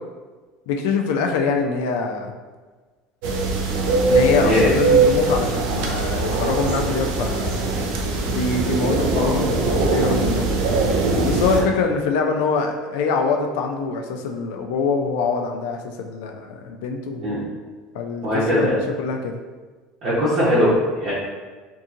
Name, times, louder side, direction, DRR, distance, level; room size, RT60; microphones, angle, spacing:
voice 1, 0.7-2.3 4.1-7.5 8.3-10.5 11.2-17.3 17.9-19.4, left 4 dB, 80° left, 4 dB, 0.3 m, -24 dB
sound 1, 3.2-11.6, right 3 dB, 75° right, 0.4 m, -21 dB
voice 2, 9.1-9.6 17.2-17.4 18.2-18.7 20.0-21.1, equal, 45° right, -10 dB, 0.9 m, -20 dB
2.6 x 2.6 x 2.4 m, 1.4 s
supercardioid pair, 140°, 0 cm